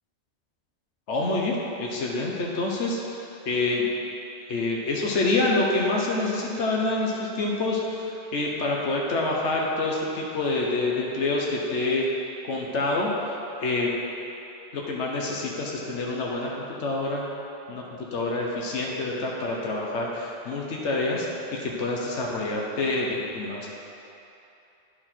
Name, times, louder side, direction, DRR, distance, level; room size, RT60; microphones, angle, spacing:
voice 1, 1.1-3.9 4.5-12.1 12.4-13.1 13.6-13.9 14.7-17.2 17.7-17.8 18.1-23.7, left 2 dB, 90° left, -2 dB, 1.2 m, -27 dB
10.5 x 4.5 x 4.4 m, 2.9 s
omnidirectional pair, 1.1 m